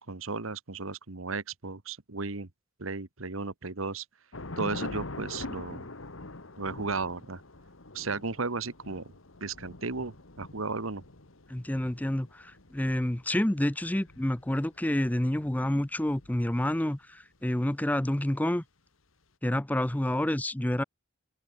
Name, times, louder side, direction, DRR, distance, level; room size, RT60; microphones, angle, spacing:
voice 1, 0.0-2.5 2.8-4.0 4.6-5.9 6.6-7.4 7.9-9.1 9.4-11.0, right 3 dB, 90° right, 1.5 m, -34 dB
Thunder / Rain, 4.3-16.8, left 2 dB, 80° left, 2.1 m, -44 dB
voice 2, 11.5-18.6 19.4-20.8, left 1 dB, 10° left, 0.5 m, -28 dB
head